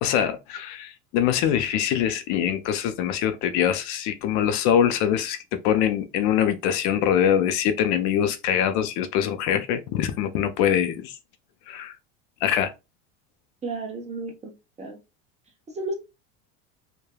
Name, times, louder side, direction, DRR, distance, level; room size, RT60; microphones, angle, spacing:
voice 1, 0.0-11.2 11.7-12.0 12.4-12.7, left 9 dB, 60° left, 0.5 m, -23 dB
voice 2, 13.6-14.5 14.8-15.0 15.7-15.9, right 3 dB, 20° right, 0.8 m, -32 dB
3.3 x 2.1 x 2.2 m
supercardioid pair, 120°, 33 cm